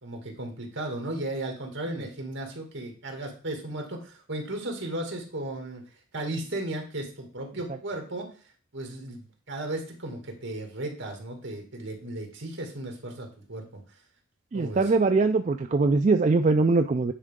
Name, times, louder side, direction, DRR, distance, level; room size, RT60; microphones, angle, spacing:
voice 1, 0.0-5.8 6.1-8.3 8.7-13.6 14.5-14.8, right 1 dB, 65° right, 3 dB, 2.3 m, -35 dB
voice 2, 14.5-17.1, right 3 dB, 35° right, 7 dB, 0.3 m, -22 dB
9.9 x 4.6 x 3.7 m, 0.39 s
head